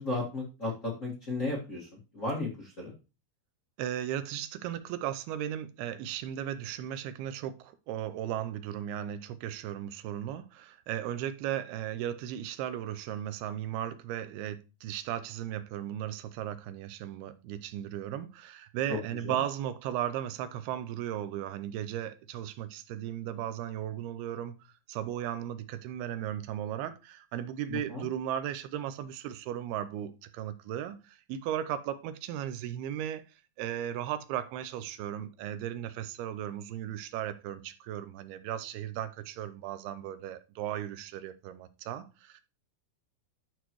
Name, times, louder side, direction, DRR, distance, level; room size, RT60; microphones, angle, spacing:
voice 1, 0.0-2.9 18.9-19.4 27.7-28.0, left 2 dB, 30° left, 1.5 m, -35 dB
voice 2, 3.8-24.6 24.9-33.2 33.6-42.4, right 11 dB, 80° right, 2.6 m, -36 dB
11.5 x 6.2 x 3.1 m
omnidirectional pair, 4.6 m